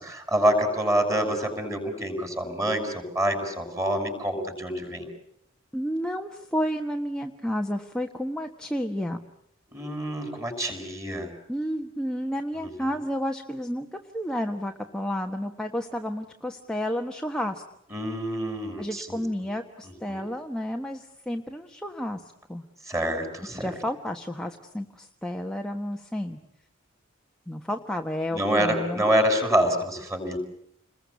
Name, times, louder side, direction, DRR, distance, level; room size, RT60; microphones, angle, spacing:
voice 1, 0.0-5.1 9.7-11.3 12.6-12.7 17.9-19.2 20.1-20.2 22.9-23.7 28.3-30.4, right 1 dB, 15° right, 5 dB, 6.6 m, -26 dB
voice 2, 5.7-9.2 11.5-17.6 18.8-22.6 23.5-26.4 27.5-29.0, equal, 5° left, 2 dB, 1.4 m, -31 dB
30.0 x 21.5 x 8.3 m, 0.77 s
head